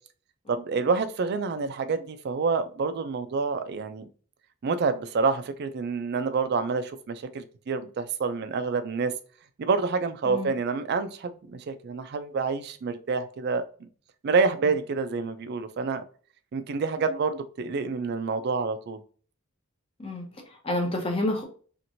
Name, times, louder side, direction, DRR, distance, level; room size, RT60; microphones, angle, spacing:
voice 1, 0.5-4.1 4.6-9.1 9.6-13.6 14.2-16.0 16.5-19.0, right 4 dB, 50° right, 0.3 m, -28 dB
voice 2, 20.0-21.4, left 1 dB, 25° left, 0.7 m, -29 dB
2.9 x 2.5 x 2.6 m
head